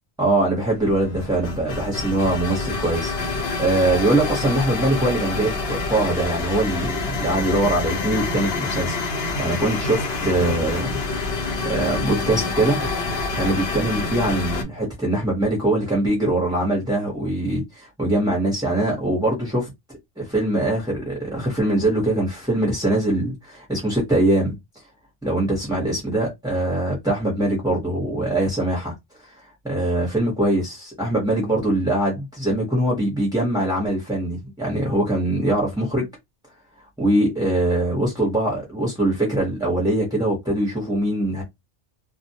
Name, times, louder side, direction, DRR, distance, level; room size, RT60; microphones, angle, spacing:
voice 1, 0.2-12.9 13.3-24.5 25.2-28.9 29.2-36.0 37.0-41.4, right 1 dB, 5° right, 0.7 m, -23 dB
sound 1, 0.7-14.6, left 3 dB, 70° left, 0.8 m, -27 dB
2.2 x 2.1 x 2.7 m
omnidirectional pair, 1.1 m